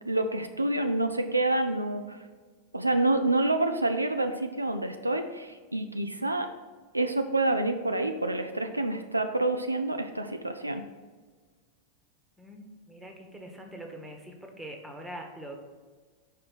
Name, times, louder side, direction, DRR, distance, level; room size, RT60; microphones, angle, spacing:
voice 1, 0.0-2.3 2.7-6.5 6.9-10.8, right 2 dB, 85° right, 7 dB, 0.4 m, -28 dB
voice 2, 12.4-15.6, right 1 dB, 10° right, 3 dB, 1.2 m, -43 dB
5.7 x 4.9 x 6.2 m, 1.4 s
figure-of-eight pair, 90°, 0 cm